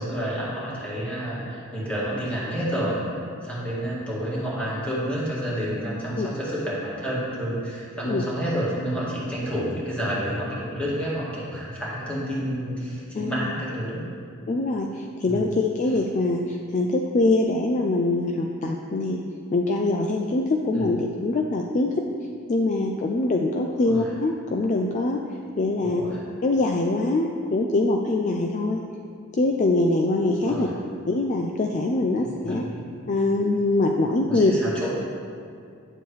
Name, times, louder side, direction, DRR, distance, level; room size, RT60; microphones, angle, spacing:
voice 1, 0.0-3.0 3.4-14.0 15.2-15.5 20.7-21.0 23.8-24.1 25.8-26.2 30.5-30.7 32.1-32.8 34.3-34.9, equal, 5° left, -8 dB, 2.1 m, -29 dB
voice 2, 13.1-13.5 14.5-19.2 19.5-21.9 22.5-25.2 25.6-26.1 26.4-28.8 29.4-30.7 31.1-32.6 33.1-34.5, left 2 dB, 35° left, 2 dB, 0.4 m, -23 dB
9.8 x 7.0 x 3.2 m, 2.3 s
head